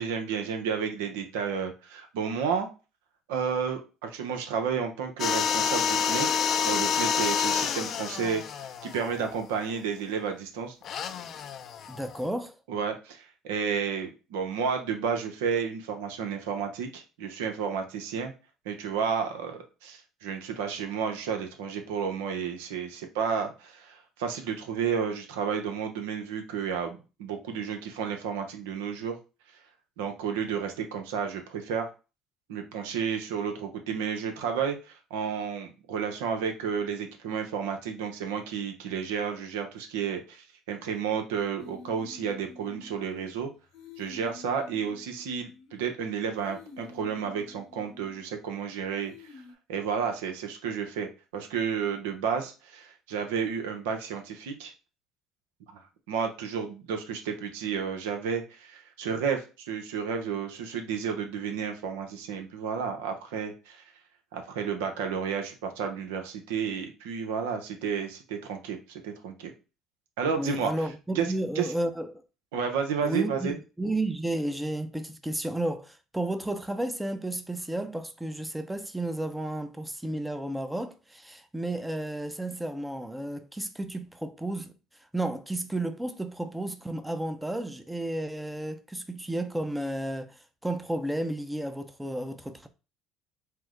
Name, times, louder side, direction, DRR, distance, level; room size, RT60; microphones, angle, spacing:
voice 1, 0.0-2.7 3.3-6.4 6.6-8.4 8.8-10.7 12.7-18.3 18.7-29.2 30.0-31.9 32.5-43.5 44.0-49.1 49.7-54.7 56.1-63.8 64.3-69.5 70.2-70.7 71.1-71.3 71.6-71.7 72.5-73.5, right 6 dB, 85° right, 0.8 m, -31 dB
sound 1, 5.2-9.7 10.8-12.2, left 7 dB, 55° left, 0.5 m, -28 dB
voice 2, 11.9-12.5 70.4-72.2 73.0-84.7 85.1-92.7, right 1 dB, 5° right, 0.6 m, -32 dB
sound 2, 41.6-43.4 43.7-45.9 46.3-48.5 49.0-49.5, left 4 dB, 70° left, 1.0 m, -50 dB
4.6 x 2.1 x 3.7 m
supercardioid pair, 80°, 0 cm